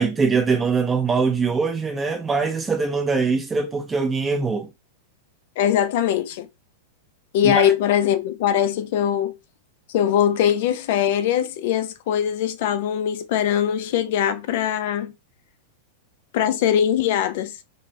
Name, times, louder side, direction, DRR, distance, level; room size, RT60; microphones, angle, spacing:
voice 1, 0.0-4.7 7.4-7.7, right 4 dB, 20° right, 0.8 m, -22 dB
voice 2, 5.6-6.5 7.3-9.3 9.9-15.1 16.3-17.5, left 10 dB, 60° left, 0.4 m, -21 dB
2.9 x 2.1 x 2.7 m
hypercardioid pair, 100°, 0 cm